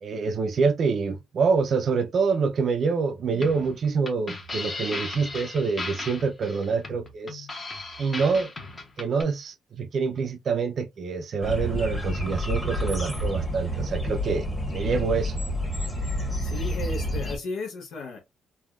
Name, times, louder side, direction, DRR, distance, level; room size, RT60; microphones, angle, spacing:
voice 1, 0.0-7.5 8.0-8.5 9.0-15.4, right 5 dB, 55° right, 0.4 m, -26 dB
sound 1, 3.3-9.2, left 2 dB, 30° left, 0.9 m, -36 dB
sound 2, 11.4-17.4, equal, 15° left, 1.1 m, -29 dB
voice 2, 16.4-18.2, left 3 dB, 75° left, 0.6 m, -34 dB
3.4 x 2.2 x 2.3 m
cardioid pair, 90°, 0 cm